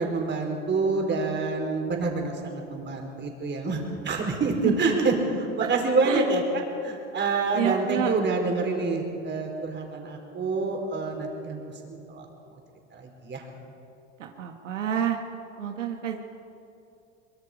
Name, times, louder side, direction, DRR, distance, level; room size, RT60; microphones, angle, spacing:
voice 1, 0.0-6.4 6.8-12.3 12.9-13.4, right 3 dB, 30° right, 2 dB, 4.4 m, -27 dB
voice 2, 7.5-8.1 14.2-15.2 15.6-16.2, right 9 dB, 90° right, 4 dB, 1.4 m, -28 dB
23.5 x 22.0 x 5.1 m, 2.7 s
hypercardioid pair, 90°, 36 cm